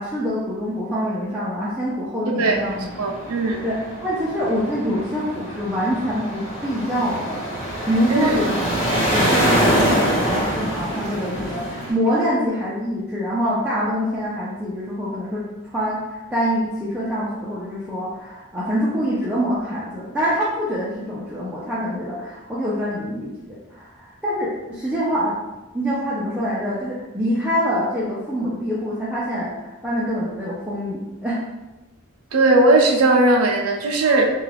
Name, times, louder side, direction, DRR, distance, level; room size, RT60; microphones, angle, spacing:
voice 1, 0.0-2.9 3.6-7.4 7.9-8.5 9.1-25.4 25.7-31.4, equal, 5° right, -9 dB, 0.4 m, -25 dB
sound 1, 2.5-11.9, right 1 dB, 30° left, 1.0 m, -24 dB
voice 2, 3.0-3.6 8.1-8.4 32.3-34.3, right 2 dB, 80° right, 2 dB, 0.5 m, -17 dB
2.3 x 2.3 x 3.2 m, 1.0 s
head